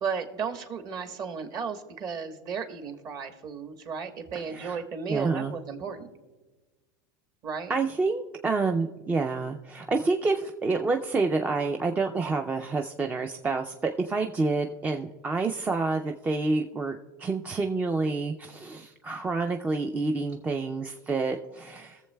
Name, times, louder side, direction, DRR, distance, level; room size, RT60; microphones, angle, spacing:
voice 1, 0.0-6.1 7.4-7.7, right 6 dB, 40° right, 6 dB, 1.2 m, -34 dB
voice 2, 4.3-4.8 5.1-5.6 7.7-22.0, right 3 dB, 15° right, 4 dB, 0.4 m, -28 dB
21.5 x 7.1 x 2.2 m, 1.2 s
supercardioid pair, 130°, 11 cm